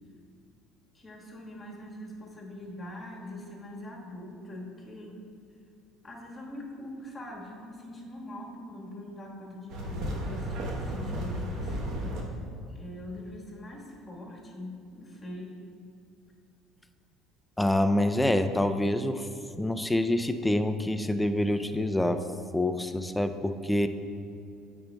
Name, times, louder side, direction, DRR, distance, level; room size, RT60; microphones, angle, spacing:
voice 1, 0.9-5.2 6.0-12.1 12.7-15.6, left 1 dB, 25° left, -2 dB, 1.4 m, -43 dB
sound 1, 9.7-12.2, equal, 65° right, 1.0 m, -33 dB
voice 2, 17.6-19.3 19.6-22.2 22.5-23.9, left 1 dB, 5° left, 9 dB, 0.3 m, -26 dB
8.6 x 5.3 x 2.2 m, 2.5 s
supercardioid pair, 90°, 0 cm